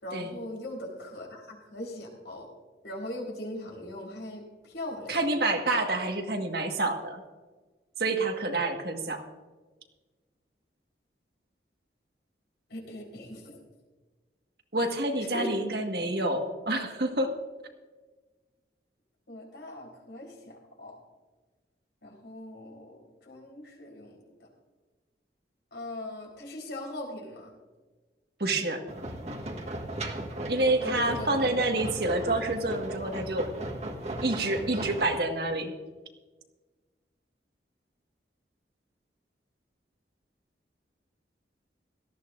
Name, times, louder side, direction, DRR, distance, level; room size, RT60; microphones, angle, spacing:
voice 1, 0.0-2.5 2.8-5.2 12.7-13.6 15.2-15.5 19.3-21.0 22.0-24.5 25.7-27.5 30.3-31.4, left 1 dB, 80° left, 0 dB, 4.1 m, -40 dB
voice 2, 5.1-7.2 8.0-9.2 14.7-17.3 28.4-28.8 30.5-33.5 34.2-35.7, right 2 dB, 60° right, 3 dB, 1.7 m, -28 dB
sound 1, 28.9-35.2, right 1 dB, 40° right, 1.5 m, -36 dB
18.0 x 14.0 x 2.6 m, 1.3 s
head